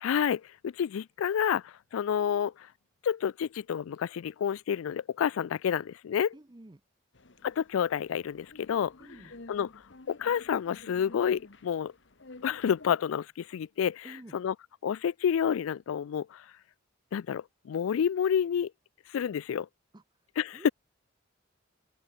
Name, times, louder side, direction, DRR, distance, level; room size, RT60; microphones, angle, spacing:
voice 1, 0.0-2.5 3.0-6.3 7.4-8.9 9.5-9.7 10.1-11.9 12.4-14.5 14.8-16.4 17.1-18.7 19.1-19.7 20.4-20.7, left 8 dB, 85° left, 0.3 m, -29 dB
voice 2, 6.3-6.8 9.0-9.3 14.0-14.3 19.9-20.0 20.5-20.7, right 1 dB, 20° right, 0.6 m, -49 dB
sound 1, 7.1-12.9, left 2 dB, 60° left, 1.3 m, -52 dB
open air
head